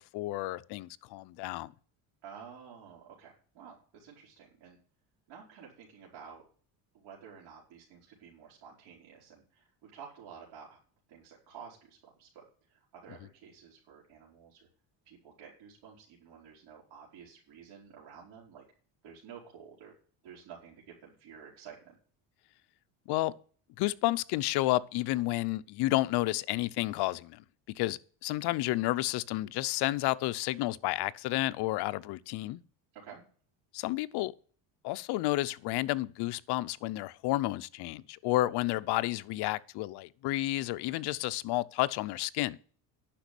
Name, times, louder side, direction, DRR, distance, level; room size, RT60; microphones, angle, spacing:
voice 1, 0.1-1.7 23.1-23.3 23.8-27.4 27.8-32.6 33.7-34.3 34.8-42.6, left 17 dB, 65° left, 0.7 m, -31 dB
voice 2, 2.2-4.8 5.3-6.4 6.9-10.8 11.1-14.7 15.0-18.6 19.0-19.9 20.2-21.9 32.9-33.2, right 7 dB, 80° right, 4.6 m, -51 dB
10.5 x 6.1 x 8.3 m
cardioid pair, 155°, 43 cm